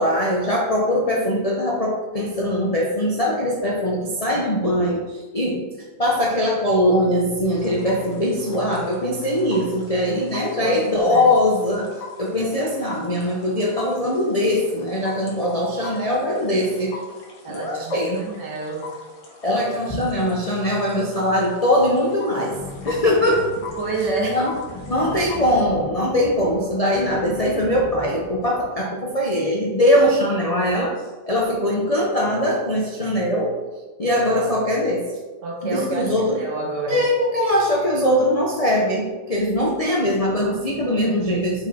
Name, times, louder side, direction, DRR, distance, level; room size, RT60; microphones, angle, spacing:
voice 1, 0.0-5.6 6.0-11.9 12.2-16.9 17.5-18.3 19.4-22.6 22.8-23.5 24.3-24.5 24.9-30.9 31.3-33.5 34.0-35.0 35.6-36.4 36.9-41.7, left 1 dB, 70° left, -4 dB, 0.3 m, -21 dB
sound 1, 7.5-25.6, left 4 dB, 85° left, 2.0 m, -42 dB
voice 2, 10.6-11.3 17.4-18.9 23.8-24.4 35.4-37.1, right 3 dB, 60° right, 0 dB, 1.8 m, -28 dB
sound 2, 22.5-28.7, left 2 dB, 15° left, 0.8 m, -39 dB
5.2 x 4.9 x 4.2 m, 1.3 s
omnidirectional pair, 2.1 m